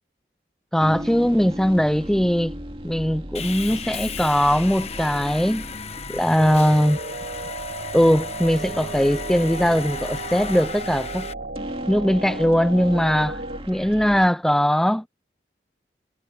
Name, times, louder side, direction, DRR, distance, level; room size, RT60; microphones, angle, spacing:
voice 1, 0.7-5.7 6.1-7.0 7.9-11.3 11.9-15.1, equal, 5° left, 0.4 m, -20 dB
sound 1, 0.8-14.3, equal, 30° right, 2.7 m, -37 dB
Sawing, 3.3-11.3, left 7 dB, 35° left, 1.1 m, -36 dB
sound 2, 6.4-13.6, right 3 dB, 65° right, 1.1 m, -34 dB
head